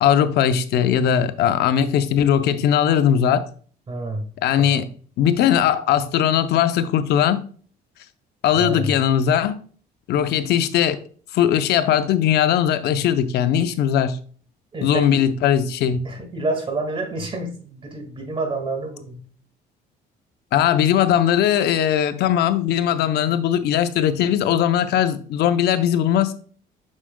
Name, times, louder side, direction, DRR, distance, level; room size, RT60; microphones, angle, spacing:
voice 1, 0.0-3.5 4.4-4.9 5.2-7.4 8.4-9.6 10.1-11.0 11.3-14.2 14.8-16.0 20.5-26.3, left 9 dB, 75° left, 0.7 m, -19 dB
voice 2, 3.9-4.2 4.5-4.8 8.6-8.9 14.7-15.2 16.0-19.2, right 2 dB, 30° right, 1.9 m, -28 dB
7.3 x 6.3 x 2.2 m
cardioid pair, 110°, 17 cm